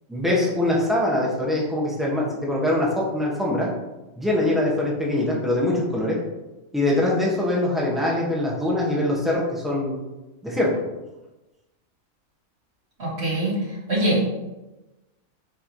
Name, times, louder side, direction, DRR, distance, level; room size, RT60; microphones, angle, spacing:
voice 1, 0.1-3.7 4.2-6.2 6.7-10.0 10.4-10.7, left 1 dB, ahead, -4 dB, 1.7 m, -23 dB
voice 2, 13.0-13.5 13.9-14.2, right 1 dB, 50° right, -6 dB, 2.5 m, -22 dB
8.1 x 5.0 x 3.2 m, 1.0 s
omnidirectional pair, 1.4 m